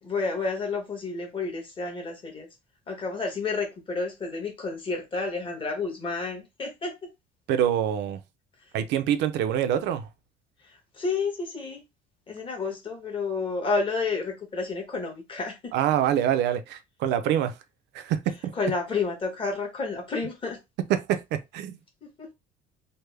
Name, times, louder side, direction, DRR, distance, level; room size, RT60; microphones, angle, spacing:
voice 1, 0.0-2.5 2.9-6.9 10.6-11.8 12.3-15.7 18.5-20.6 22.2-22.3, left 4 dB, 25° left, 1.2 m, -30 dB
voice 2, 7.5-8.2 8.7-10.1 15.7-17.5 17.9-18.5 20.9-21.2 21.5-21.8, right 10 dB, 65° right, 0.5 m, -25 dB
3.3 x 2.1 x 3.3 m
cardioid pair, 160°, 19 cm